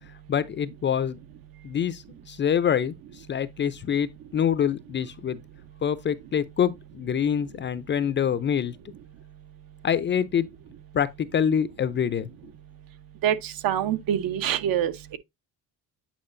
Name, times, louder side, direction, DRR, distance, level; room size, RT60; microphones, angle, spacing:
voice 1, 0.3-1.2 1.6-2.9 3.3-5.4 5.8-8.8 9.8-10.5 10.9-12.3, left 8 dB, 30° left, 0.4 m, -25 dB
voice 2, 13.2-15.2, right 10 dB, 60° right, 0.8 m, -25 dB
8.7 x 4.9 x 2.5 m
cardioid pair, 120°, 39 cm